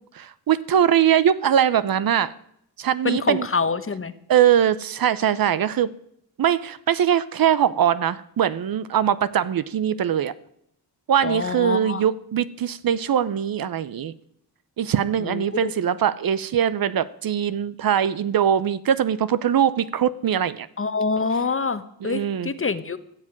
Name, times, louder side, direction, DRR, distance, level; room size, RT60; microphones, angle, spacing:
voice 1, 0.1-2.3 2.8-3.5 4.3-5.9 6.4-10.3 11.1-14.1 14.8-20.7 22.0-22.5, right 9 dB, 55° right, 0.8 m, -21 dB
voice 2, 3.0-4.1 11.2-12.0 15.2-15.7 20.8-23.0, left 4 dB, 30° left, 1.1 m, -26 dB
15.0 x 7.5 x 8.8 m
cardioid pair, 70°, 41 cm